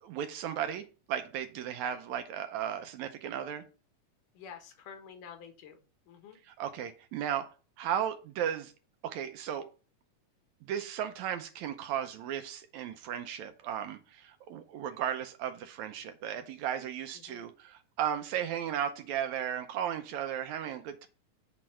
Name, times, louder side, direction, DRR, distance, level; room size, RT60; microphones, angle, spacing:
voice 1, 0.0-3.6 6.4-7.5 7.8-8.7 9.0-9.7 10.6-21.1, right 9 dB, 75° right, 8 dB, 1.8 m, -35 dB
voice 2, 4.3-6.4 17.3-17.4, left 7 dB, 90° left, 5 dB, 2.8 m, -49 dB
8.3 x 4.4 x 4.4 m, 0.36 s
omnidirectional pair, 3.7 m